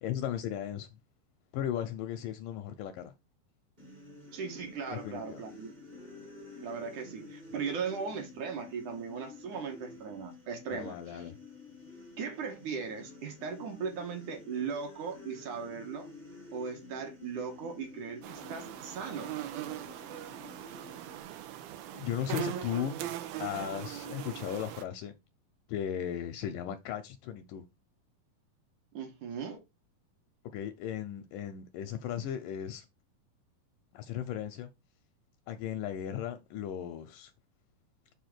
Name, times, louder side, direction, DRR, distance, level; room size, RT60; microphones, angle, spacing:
voice 1, 0.0-0.9 1.5-3.1 4.9-5.4 10.7-11.3 21.9-23.1 23.4-25.2 25.7-27.6 30.5-32.9 33.9-34.7 35.5-37.3, left 10 dB, 80° left, 2.0 m, -36 dB
sound 1, 3.8-21.2, left 3 dB, 35° right, 0.6 m, -50 dB
voice 2, 4.3-5.7 6.6-11.3 12.2-16.1 16.5-19.3 28.9-29.6, right 6 dB, 65° right, 2.2 m, -38 dB
sound 2, 18.2-24.8, right 11 dB, 85° right, 2.6 m, -40 dB
7.1 x 2.8 x 5.9 m
omnidirectional pair, 4.3 m